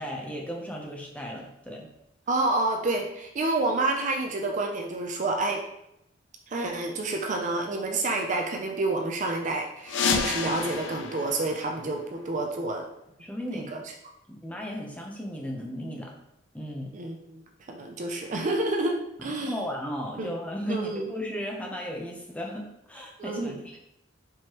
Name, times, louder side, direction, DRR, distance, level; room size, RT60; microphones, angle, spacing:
voice 1, 0.0-1.9 13.2-13.7 14.4-16.1 16.5-16.9 19.2-23.8, equal, 5° left, -1 dB, 0.6 m, -35 dB
voice 2, 2.3-5.6 6.5-12.9 13.5-13.8 16.9-17.4 17.7-19.6 20.2-20.3 20.7-21.1 23.2-23.6, right 2 dB, 40° right, 2 dB, 0.4 m, -29 dB
sound 1, 9.8-12.5, left 5 dB, 70° left, 0.4 m, -30 dB
4.6 x 3.2 x 2.9 m, 0.80 s
head